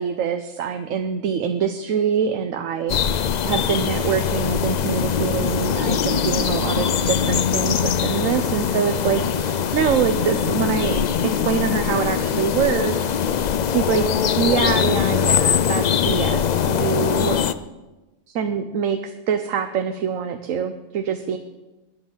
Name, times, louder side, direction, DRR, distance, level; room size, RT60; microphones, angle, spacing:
voice 1, 0.0-2.9 3.4-14.1 14.4-17.4 18.3-21.4, right 7 dB, 85° right, 7 dB, 1.1 m, -25 dB
sound 1, 2.9-17.5, left 8 dB, 65° left, 0.4 m, -22 dB
21.0 x 9.6 x 4.0 m, 1.1 s
omnidirectional pair, 1.3 m